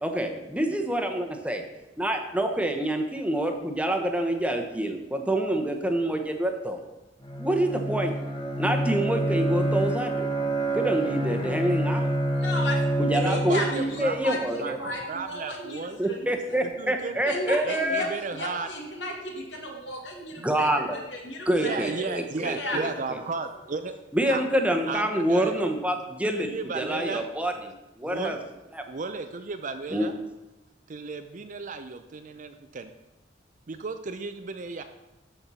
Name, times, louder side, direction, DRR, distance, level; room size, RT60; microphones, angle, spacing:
voice 1, 0.0-1.6 2.0-6.8 7.4-8.1 8.6-10.3 10.7-12.1 13.0-13.6 14.0-14.8 16.0-18.1 20.4-21.0 21.5-22.9 24.1-26.5 26.7-27.5 28.0-28.4 28.7-28.8 29.9-30.1, right 1 dB, 5° right, 4 dB, 1.0 m, -26 dB
Bowed string instrument, 7.2-15.0, right 1 dB, 25° left, 1.3 m, -28 dB
voice 2, 12.3-16.3 17.2-21.9 22.4-22.8, left 1 dB, 75° left, 0 dB, 2.2 m, -34 dB
voice 3, 13.2-14.2 14.6-16.0 16.6-17.2 17.6-18.7 21.5-23.9 24.3-24.4 24.9-25.6 26.4-27.3 28.0-28.4 28.9-30.2 30.9-32.9 33.7-34.8, right 4 dB, 45° right, 8 dB, 0.5 m, -34 dB
13.5 x 4.5 x 5.6 m, 1.0 s
head